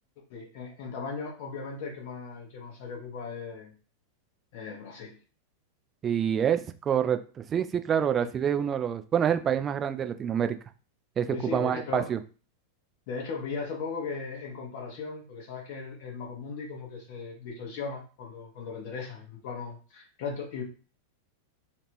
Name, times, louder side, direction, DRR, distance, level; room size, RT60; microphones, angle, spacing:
voice 1, 0.3-3.7 4.5-5.2 11.3-12.1 13.1-20.6, left 5 dB, 50° left, 1 dB, 0.9 m, -37 dB
voice 2, 6.0-7.2 7.5-10.6 11.2-12.2, right 8 dB, 25° right, 9 dB, 0.3 m, -27 dB
3.1 x 2.4 x 3.1 m, 0.37 s
figure-of-eight pair, 90°, 0 cm